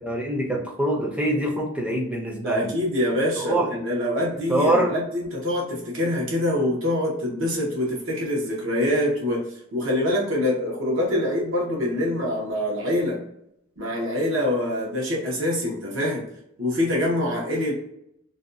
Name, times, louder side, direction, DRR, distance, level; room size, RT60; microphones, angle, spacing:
voice 1, 0.0-2.7 3.3-3.7 4.5-4.9, right 1 dB, 5° right, -2 dB, 0.5 m, -24 dB
voice 2, 2.4-9.4 9.7-13.2 13.8-16.2 16.6-17.7, left 1 dB, 75° right, -3 dB, 0.9 m, -25 dB
2.6 x 2.2 x 2.5 m, 0.76 s
head